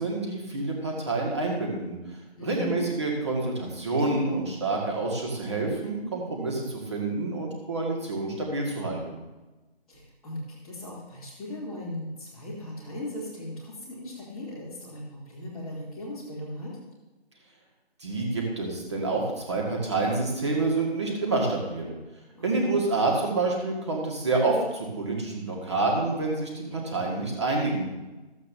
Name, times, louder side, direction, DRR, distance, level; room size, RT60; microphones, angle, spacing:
voice 1, 0.0-2.0 2.4-9.2 18.0-21.9 22.4-27.8, right 3 dB, 25° right, -1 dB, 1.9 m, -28 dB
voice 2, 2.4-2.8 3.5-3.7 4.0-4.4 9.9-16.7 22.3-22.7, left 1 dB, ahead, -15 dB, 1.4 m, -38 dB
14.0 x 8.3 x 2.8 m, 1.1 s
figure-of-eight pair, 165°, 32 cm